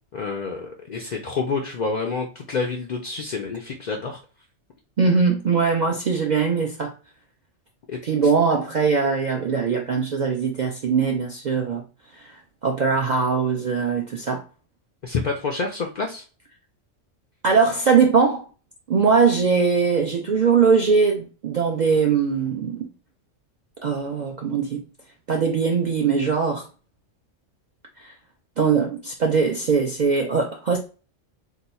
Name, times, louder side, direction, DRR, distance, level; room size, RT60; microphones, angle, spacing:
voice 1, 0.1-4.2 7.9-8.3 15.0-16.2, left 4 dB, 85° left, 0.4 m, -28 dB
voice 2, 5.0-6.9 8.0-11.8 12.1-12.3 12.6-14.4 17.4-18.4 18.9-22.9 23.8-24.8 25.3-26.7 28.0-28.1 28.6-30.8, right 5 dB, 70° right, 0.4 m, -21 dB
2.8 x 2.3 x 4.1 m
omnidirectional pair, 1.3 m